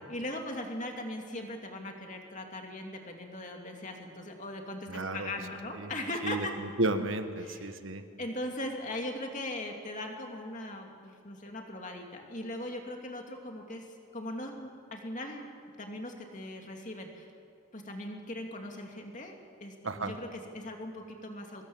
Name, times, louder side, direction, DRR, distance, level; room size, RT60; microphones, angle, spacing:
voice 1, 0.1-6.5 7.4-7.7 8.2-13.8 14.1-15.5 15.8-17.3 17.7-21.7, left 1 dB, 35° left, 2 dB, 2.6 m, -39 dB
voice 2, 4.9-5.3 5.8-5.9 6.2-8.0 19.8-20.1, right 2 dB, 60° right, 8 dB, 1.5 m, -33 dB
25.0 x 20.5 x 7.2 m, 2.3 s
head